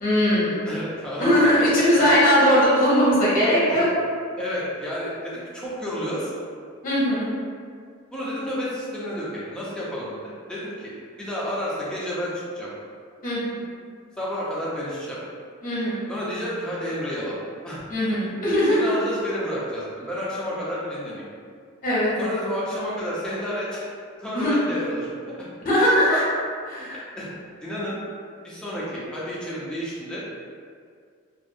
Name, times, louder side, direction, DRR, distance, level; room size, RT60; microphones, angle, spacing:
voice 1, 0.0-0.6 1.2-3.9 6.8-7.4 13.2-13.7 15.6-16.1 17.9-18.8 21.8-22.1 24.3-24.5 25.6-26.2 26.7-27.0, equal, 40° left, -8 dB, 0.7 m, -20 dB
voice 2, 0.7-1.5 1.9-2.1 3.7-3.9 4.4-6.3 8.1-10.9 11.2-12.7 14.2-15.2 16.1-17.4 17.6-17.8 18.7-21.2 22.2-23.9 24.2-25.5 26.9-27.3 27.6-28.0 28.4-30.2, equal, 5° left, -8 dB, 0.5 m, -30 dB
2.4 x 2.0 x 2.6 m, 2.1 s
head